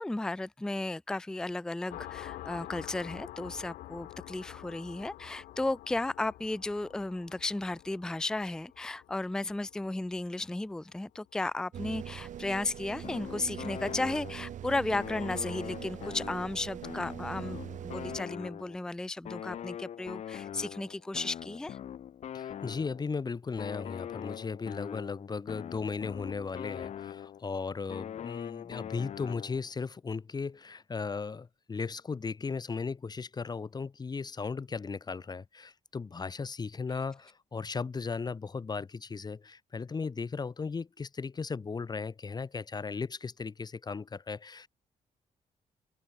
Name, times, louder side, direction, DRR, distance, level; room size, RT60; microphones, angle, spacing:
voice 1, 0.0-21.8, left 2 dB, 5° left, 0.4 m, -34 dB
sound 1, 1.9-11.2, left 15 dB, 90° left, 0.7 m, -48 dB
sound 2, 11.7-18.2, right 10 dB, 65° right, 1.4 m, -42 dB
sound 3, 13.0-14.6 14.9-18.9 19.3-23.1 23.6-27.5 27.9-29.7, left 10 dB, 55° left, 0.7 m, -42 dB
voice 2, 22.3-44.7, left 4 dB, 30° left, 1.6 m, -36 dB
open air
cardioid pair, 110°, 14 cm